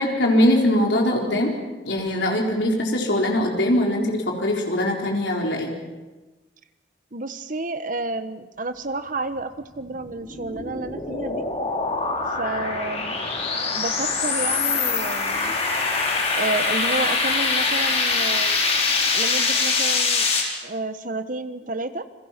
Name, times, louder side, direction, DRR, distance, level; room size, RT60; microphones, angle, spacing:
voice 1, 0.0-1.6 1.8-5.7, left 1 dB, 80° left, 0 dB, 4.3 m, -21 dB
voice 2, 7.1-11.4 12.3-13.2 13.7-15.5 16.4-18.6 19.1-20.3 20.6-22.1, right 2 dB, 45° right, 10 dB, 1.3 m, -30 dB
sound 1, 9.8-20.4, left 4 dB, 35° left, 4.2 m, -23 dB
29.5 x 22.0 x 6.0 m, 1.2 s
head